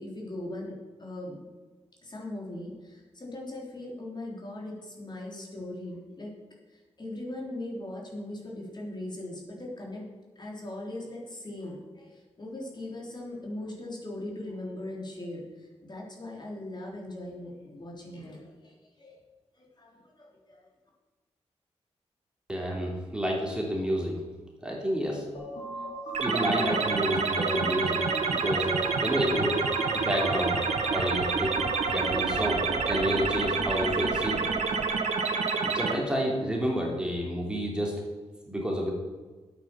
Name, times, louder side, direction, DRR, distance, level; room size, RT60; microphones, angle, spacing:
voice 1, 0.0-1.4 2.0-6.3 6.7-10.0 10.4-19.2 19.6-20.7, left 1 dB, 40° left, -3 dB, 3.5 m, -40 dB
voice 2, 22.5-24.2 24.6-25.2 26.2-28.0 28.3-28.7 29.0-29.6 29.9-30.6 30.9-31.5 31.9-34.4 35.7-37.9 38.5-38.9, equal, 10° right, -2 dB, 3.0 m, -29 dB
sound 1, 25.3-33.3, right 2 dB, 75° left, 3.8 m, -38 dB
sound 2, 26.1-35.9, right 5 dB, 80° right, 1.3 m, -28 dB
9.0 x 8.3 x 6.9 m, 1.3 s
cardioid pair, 70°, 11 cm